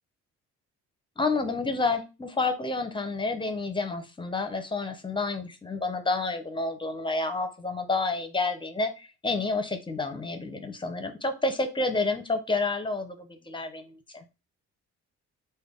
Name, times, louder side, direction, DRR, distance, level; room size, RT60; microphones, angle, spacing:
voice 1, 1.2-14.2, left 3 dB, 15° left, 8 dB, 0.6 m, -29 dB
3.4 x 2.2 x 3.6 m, 0.28 s
cardioid pair, 90°, 30 cm